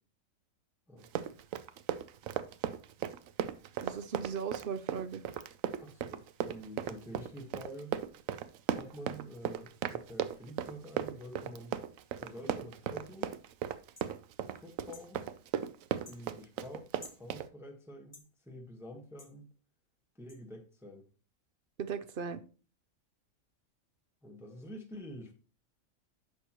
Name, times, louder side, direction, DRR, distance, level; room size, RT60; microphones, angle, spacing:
voice 1, 0.9-1.3 5.8-7.9 8.7-11.8 12.2-13.3 14.4-15.3 16.1-16.9 17.2-19.5 20.2-21.0 24.2-25.3, equal, ahead, 1 dB, 1.1 m, -48 dB
Run, 1.0-17.5, right 10 dB, 75° right, 1.0 m, -36 dB
voice 2, 3.8-5.2 21.8-22.4, right 6 dB, 55° right, 12 dB, 0.7 m, -37 dB
sound 1, 14.0-14.1 14.9-15.1 16.0-16.2 17.0-17.2 18.1-18.3 19.2-19.3 20.3-20.4, left 2 dB, 20° left, 0.8 m, -52 dB
10.5 x 6.5 x 3.0 m, 0.36 s
omnidirectional pair, 1.4 m